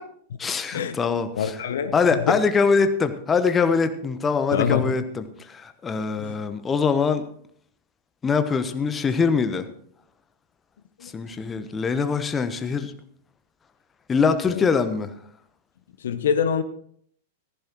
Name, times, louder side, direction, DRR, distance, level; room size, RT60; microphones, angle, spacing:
voice 1, 0.4-1.5 1.9-7.2 8.2-9.7 11.0-12.9 14.1-15.1, left 5 dB, 20° left, 1.0 m, -23 dB
voice 2, 1.4-2.4 4.5-4.9 6.0-6.4 11.0-11.1 14.4-14.6 16.0-16.6, left 7 dB, 65° left, 0.9 m, -25 dB
15.0 x 15.0 x 3.1 m
figure-of-eight pair, 95°, 0 cm